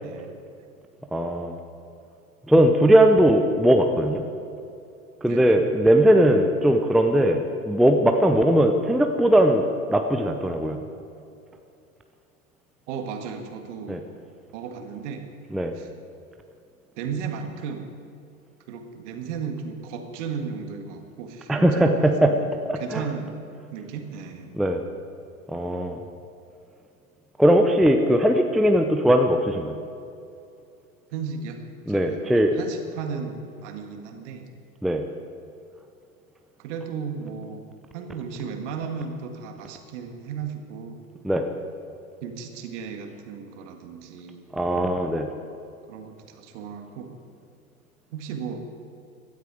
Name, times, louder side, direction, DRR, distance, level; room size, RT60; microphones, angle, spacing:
voice 1, 0.0-0.4 5.3-5.6 12.9-14.0 14.5-15.3 15.7-15.9 17.0-17.9 18.7-23.4 23.7-24.5 31.1-31.6 31.9-34.5 36.6-41.0 42.2-44.8 45.9-47.2 48.1-48.7, right 6 dB, 50° right, 5 dB, 1.9 m, -35 dB
voice 2, 1.1-1.6 2.5-4.2 5.2-10.8 13.9-14.0 15.5-15.7 21.5-22.3 22.7-23.0 24.6-24.8 25.5-26.0 27.4-29.7 31.9-32.5 34.8-35.0 41.2-41.5 44.5-45.3, right 1 dB, ahead, 5 dB, 0.6 m, -19 dB
16.5 x 13.0 x 4.9 m, 2.6 s
figure-of-eight pair, 90°, 43 cm